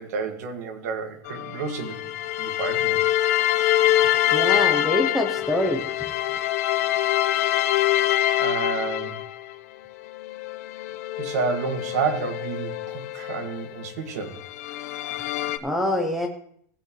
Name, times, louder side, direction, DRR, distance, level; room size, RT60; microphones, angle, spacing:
voice 1, 0.0-2.1 2.4-3.0 8.4-9.2 11.2-14.4, right 5 dB, 70° right, 5 dB, 1.9 m, -30 dB
sound 1, 1.3-9.5 10.1-13.9 14.3-15.6, left 13 dB, 60° left, 0.7 m, -25 dB
voice 2, 4.3-5.9 15.6-16.3, left 1 dB, ahead, 4 dB, 0.7 m, -25 dB
17.5 x 8.3 x 3.1 m, 0.64 s
supercardioid pair, 180°, 9 cm